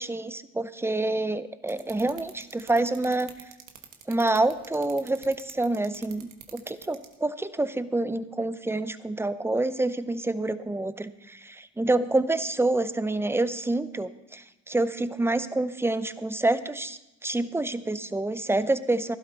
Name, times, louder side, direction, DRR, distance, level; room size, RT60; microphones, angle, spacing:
voice 1, 0.0-3.3 4.1-19.2, right 2 dB, 10° right, 13 dB, 0.6 m, -27 dB
sound 1, 1.7-7.1, right 10 dB, 85° right, 1.4 m, -45 dB
16.0 x 12.0 x 4.0 m, 0.91 s
cardioid pair, 90°, 30 cm